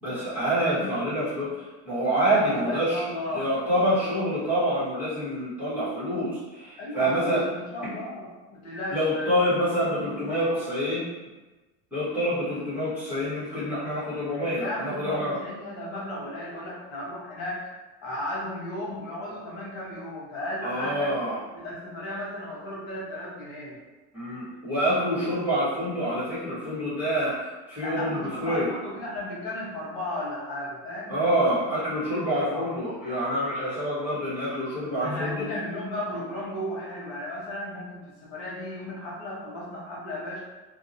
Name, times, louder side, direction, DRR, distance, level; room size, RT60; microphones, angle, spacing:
voice 1, 0.0-3.0 3.3-7.4 8.9-11.0 11.9-15.3 20.6-21.4 24.1-28.7 31.1-35.5, equal, 5° right, -13 dB, 1.2 m, -27 dB
voice 2, 0.5-0.9 2.2-3.5 6.8-9.3 9.9-10.6 14.6-17.6 18.0-21.1 21.5-23.8 27.8-31.2 32.0-32.7 35.0-40.4, left 1 dB, 65° left, -6 dB, 1.1 m, -35 dB
2.7 x 2.3 x 2.6 m, 1.2 s
cardioid pair, 155°, 31 cm